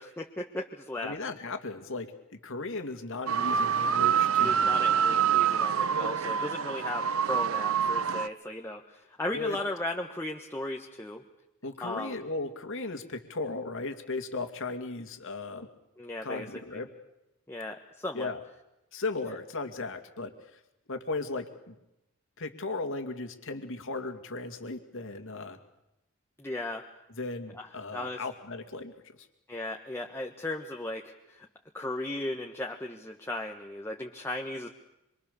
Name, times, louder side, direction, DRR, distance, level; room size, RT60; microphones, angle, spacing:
voice 1, 0.0-1.2 4.3-11.2 11.8-12.1 16.0-16.5 16.7-16.8 17.5-18.3 26.4-26.9 27.5-27.7 27.9-28.2 29.5-31.5 31.7-34.7, left 1 dB, 10° left, 1 dB, 1.4 m, -36 dB
voice 2, 1.0-2.1 2.4-4.8 9.3-9.6 11.6-15.7 16.2-16.9 18.1-18.4 18.9-20.6 20.9-21.8 22.4-25.6 27.1-29.2, left 3 dB, 65° left, 7 dB, 2.5 m, -36 dB
sound 1, 3.3-8.3, right 7 dB, 70° right, 0.9 m, -26 dB
26.0 x 24.5 x 7.0 m, 0.90 s
head